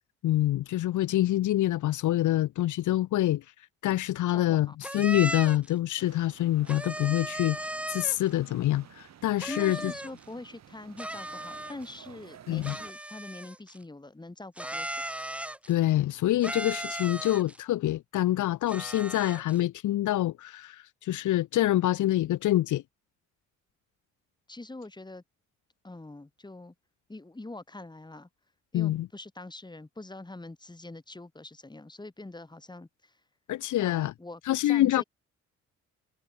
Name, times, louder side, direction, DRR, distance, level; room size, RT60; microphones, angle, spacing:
voice 1, 0.2-3.4 3.8-9.9 12.5-12.8 15.7-22.8 28.7-29.1 33.5-34.1 34.4-35.0, left 14 dB, 75° left, 1.3 m, -26 dB
voice 2, 4.3-4.8 9.5-15.0 24.5-25.2 25.8-26.7 27.1-28.3 28.7-33.1 33.8-35.0, left 2 dB, 15° left, 5.7 m, -44 dB
sound 1, 4.8-5.7 6.7-8.3 9.4-10.2 11.0-12.0 12.6-13.8 14.6-15.8 16.4-17.6 18.7-19.6, right 1 dB, 5° right, 0.9 m, -37 dB
sound 2, 6.0-12.9, right 9 dB, 60° right, 4.1 m, -53 dB
cardioid pair, 90°, 30 cm